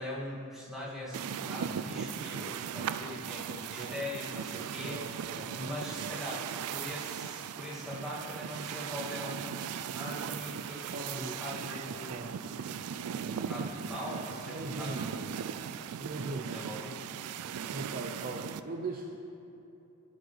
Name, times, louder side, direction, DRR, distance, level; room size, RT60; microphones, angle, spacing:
voice 1, 0.0-5.2 5.4-12.2 13.2-15.5 16.5-17.0, left 1 dB, ahead, -9 dB, 2.1 m, -41 dB
sound 1, 1.1-18.6, right 8 dB, 85° right, 0.4 m, -38 dB
voice 2, 4.6-6.0 10.9-11.4 11.9-12.4 13.6-13.8 14.5-15.0 16.0-16.6 17.7-19.2, right 2 dB, 40° right, 1 dB, 0.6 m, -40 dB
16.0 x 7.3 x 3.2 m, 2.8 s
head